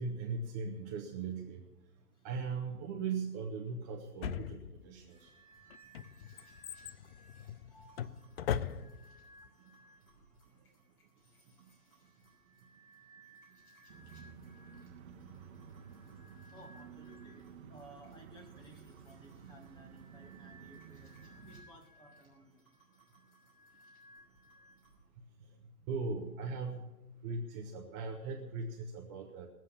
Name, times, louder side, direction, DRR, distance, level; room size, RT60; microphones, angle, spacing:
voice 1, 0.0-1.6 2.2-5.3 25.9-26.8 27.2-29.5, right 4 dB, 25° right, 3 dB, 1.0 m, -39 dB
Drawer open or close, 4.2-5.1 5.7-9.2 9.5-9.6, left 9 dB, 45° left, 0.5 m, -39 dB
sound 1, 5.1-25.0, right 1 dB, 25° left, 6.1 m, -62 dB
sound 2, 13.9-21.6, right 6 dB, 45° right, 1.2 m, -53 dB
voice 2, 16.5-21.1 21.4-22.6, right 1 dB, 10° left, 2 dB, 1.8 m, -57 dB
19.0 x 7.6 x 6.9 m, 1.1 s
hypercardioid pair, 130°, 45 cm